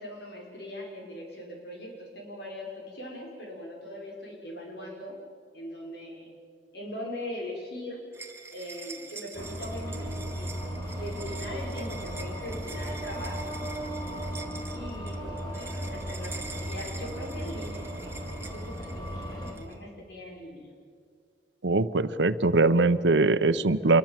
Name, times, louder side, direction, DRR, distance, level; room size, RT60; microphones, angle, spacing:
voice 1, 0.0-5.2 5.5-6.3 6.7-8.0 8.5-10.5 11.0-13.6 14.7-20.7, left 1 dB, 65° left, 0 dB, 5.9 m, -41 dB
sound 1, 8.1-19.7, right 4 dB, 15° right, 2.2 m, -45 dB
sound 2, 9.3-19.5, equal, 25° left, 5.0 m, -36 dB
voice 2, 21.6-24.0, right 3 dB, 90° right, 13 dB, 0.9 m, -22 dB
27.0 x 22.0 x 7.6 m, 2.1 s
head